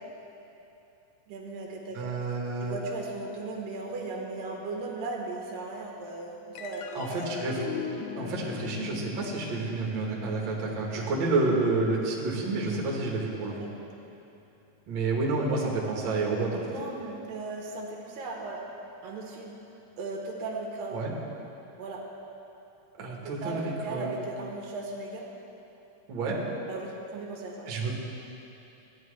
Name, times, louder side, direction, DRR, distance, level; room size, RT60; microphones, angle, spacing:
voice 1, 1.3-2.2 2.6-7.4 10.9-11.1 13.4-13.7 16.5-18.7 19.0-19.6 20.0-21.0 21.8-22.1 23.2-25.3 26.7-27.7, right 3 dB, 90° right, 0 dB, 2.8 m, -37 dB
voice 2, 1.9-2.8 6.9-7.6 8.2-13.5 14.9-16.6 20.9-21.1 23.0-24.1 26.1-26.4 27.7-27.9, right 3 dB, 50° right, -3 dB, 1.6 m, -29 dB
sound 1, 6.6-13.2, left 7 dB, 90° left, 2.3 m, -41 dB
15.0 x 9.7 x 3.2 m, 3.0 s
omnidirectional pair, 3.9 m